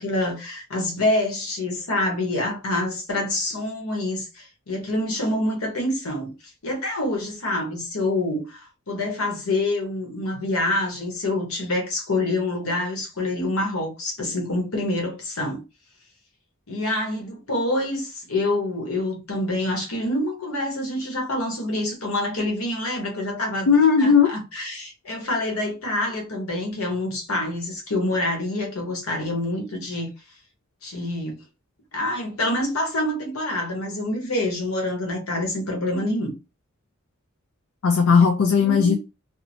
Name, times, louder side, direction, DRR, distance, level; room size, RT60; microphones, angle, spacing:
voice 1, 0.0-6.3 6.6-15.6 16.7-23.7 24.0-30.1 30.8-31.4 31.9-36.3 38.6-39.0, left 1 dB, 85° left, 1.1 m, -26 dB
voice 2, 23.7-24.3 37.8-38.9, left 6 dB, 70° left, 0.4 m, -16 dB
2.8 x 2.0 x 2.7 m
head